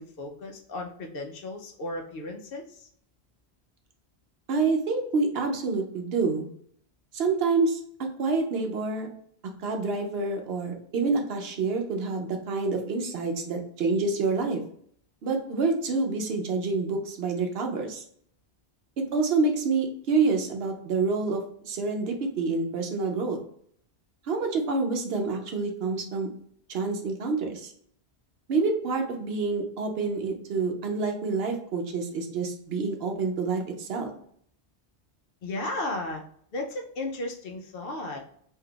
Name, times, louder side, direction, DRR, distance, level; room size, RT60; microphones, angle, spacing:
voice 1, 0.0-2.9 35.4-36.2 36.5-38.2, left 2 dB, 65° left, 2 dB, 0.7 m, -35 dB
voice 2, 4.5-6.5 7.1-9.1 9.6-14.6 15.2-18.0 19.0-23.4 24.2-26.3 26.7-27.7 28.5-34.1, right 4 dB, 70° right, 4 dB, 0.8 m, -27 dB
2.7 x 2.3 x 3.6 m, 0.63 s
omnidirectional pair, 1.1 m